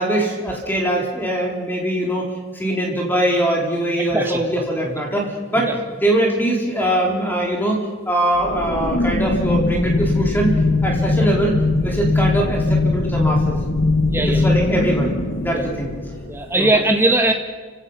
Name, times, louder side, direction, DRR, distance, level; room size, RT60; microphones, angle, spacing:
voice 1, 0.0-2.2 2.5-5.7 6.0-10.5 10.8-13.6 14.3-15.1 15.4-15.9 16.5-16.7, right 1 dB, 10° left, -1 dB, 4.2 m, -22 dB
sound 1, 8.4-16.6, left 2 dB, 55° left, 1.6 m, -20 dB
voice 2, 14.1-14.5 15.5-15.7 16.3-17.3, right 2 dB, 10° right, 3 dB, 2.0 m, -19 dB
30.0 x 17.0 x 5.7 m, 1.5 s
head